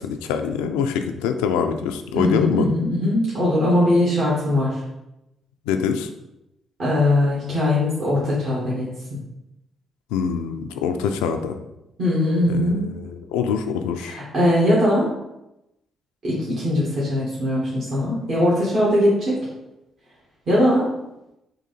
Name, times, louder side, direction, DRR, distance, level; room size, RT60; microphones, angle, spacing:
voice 1, 0.0-2.7 5.7-6.1 10.1-11.6 12.5-14.2, left 7 dB, 85° left, 7 dB, 0.3 m, -24 dB
voice 2, 2.1-4.8 6.8-8.9 12.0-12.9 14.0-15.1 16.2-19.5 20.5-20.9, left 1 dB, 60° right, -7 dB, 1.5 m, -20 dB
3.8 x 2.7 x 4.0 m, 0.90 s
hypercardioid pair, 45°, 0 cm